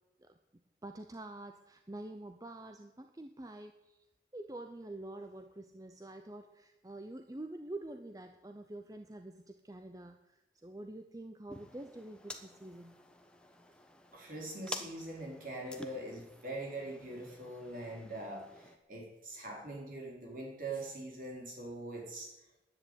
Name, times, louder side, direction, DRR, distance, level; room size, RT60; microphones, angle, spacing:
voice 1, 0.8-4.0 4.3-13.0, right 1 dB, 20° right, 7 dB, 0.6 m, -47 dB
sound 1, 11.5-18.8, left 2 dB, 5° left, 1.0 m, -50 dB
voice 2, 14.1-22.3, right 2 dB, 50° right, -1 dB, 4.3 m, -43 dB
10.5 x 9.8 x 9.2 m, 0.96 s
head